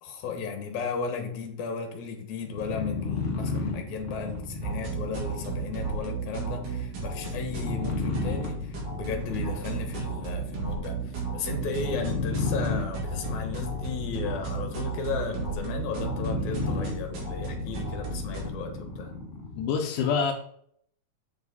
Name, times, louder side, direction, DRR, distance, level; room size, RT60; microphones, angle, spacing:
voice 1, 0.0-19.1, left 5 dB, 70° left, 4 dB, 2.7 m, -35 dB
sound 1, 2.5-19.7, left 3 dB, 45° left, 0.9 m, -34 dB
sound 2, 4.6-18.5, right 4 dB, 80° right, 4.2 m, -35 dB
voice 2, 19.6-20.3, left 6 dB, 85° left, 2 dB, 2.5 m, -26 dB
7.8 x 7.0 x 4.1 m, 0.64 s
omnidirectional pair, 3.7 m